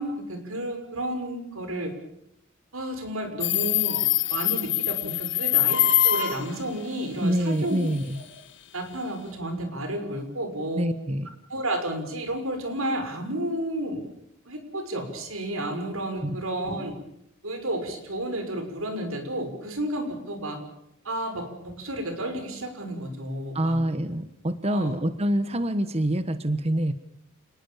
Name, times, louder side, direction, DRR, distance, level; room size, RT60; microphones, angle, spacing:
voice 1, 0.0-1.9 2.7-4.0 4.3-7.8 8.1-8.2 8.7-10.8 11.5-14.1 14.5-16.9 17.4-20.6 21.0-23.9 24.6-24.9, right 1 dB, 90° right, 7 dB, 6.3 m, -31 dB
Subway metro underground, 3.4-6.5, left 12 dB, 60° left, 1.7 m, -23 dB
voice 2, 7.2-8.2 10.8-11.3 16.2-16.4 23.5-26.9, right 1 dB, 30° right, 11 dB, 1.2 m, -26 dB
29.0 x 19.5 x 7.3 m, 0.77 s
head